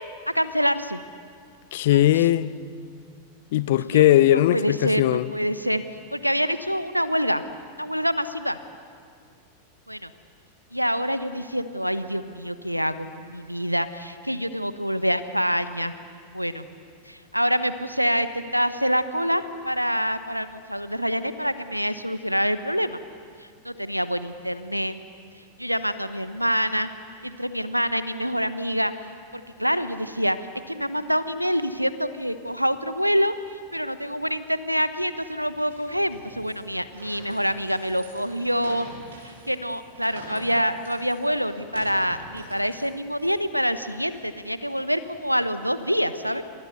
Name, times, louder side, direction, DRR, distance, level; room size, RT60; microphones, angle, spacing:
voice 1, 0.3-1.0 1.9-2.1 3.8-4.0 4.5-5.8 6.1-7.4 7.8-8.6 9.9-10.1 10.7-15.9 16.3-16.7 17.1-23.0 23.6-25.0 25.6-26.9 27.2-28.9 29.3-30.4 30.7-33.3 33.7-38.9 39.5-46.4, equal, 90° right, 12 dB, 1.1 m, -26 dB
voice 2, 1.7-2.5 3.5-5.3, left 13 dB, 55° left, 17 dB, 0.8 m, -19 dB
sound 1, 35.2-45.6, right 2 dB, 70° right, 7.8 m, -46 dB
29.0 x 26.5 x 6.9 m, 2.2 s
figure-of-eight pair, 90°, 0 cm